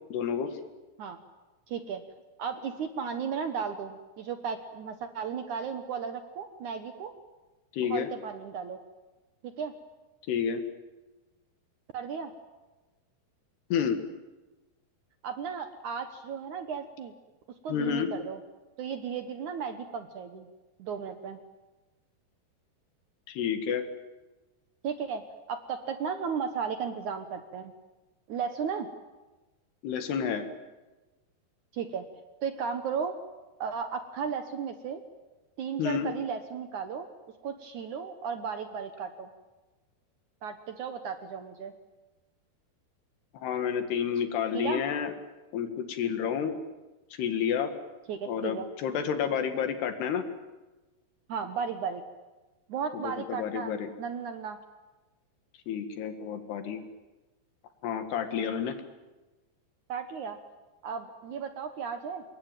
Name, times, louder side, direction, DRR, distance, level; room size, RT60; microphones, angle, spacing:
voice 1, 0.1-0.5 7.7-8.1 10.3-10.6 13.7-14.0 17.7-18.1 23.3-23.8 29.8-30.5 35.8-36.1 43.3-45.1 45.5-46.6 47.1-47.7 48.3-50.3 52.9-53.9 55.7-56.8 57.8-58.8, left 7 dB, 80° left, 8 dB, 4.0 m, -30 dB
voice 2, 1.7-2.0 2.4-7.1 7.9-8.8 9.4-9.7 11.9-12.3 15.2-17.1 17.5-18.4 18.8-20.5 20.8-21.4 24.8-25.2 25.5-27.7 28.3-28.9 31.7-32.0 32.4-33.1 33.6-35.0 35.6-37.1 37.4-39.3 40.4-41.7 44.5-44.8 48.1-48.7 51.3-52.0 52.7-54.6 59.9-60.4 60.8-62.2, right 6 dB, 65° right, 8 dB, 2.2 m, -35 dB
26.0 x 22.0 x 9.1 m, 1.2 s
omnidirectional pair, 4.6 m